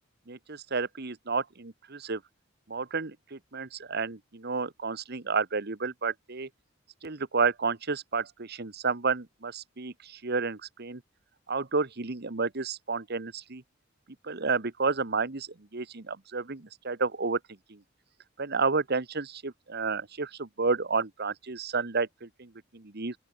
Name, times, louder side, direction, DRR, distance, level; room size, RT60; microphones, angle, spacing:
voice 1, 0.3-2.2 2.7-6.5 7.0-11.0 11.5-13.6 14.2-15.5 15.7-17.4 17.7-17.8 18.4-23.1, right 4 dB, 55° right, 1.4 m, -31 dB
open air
head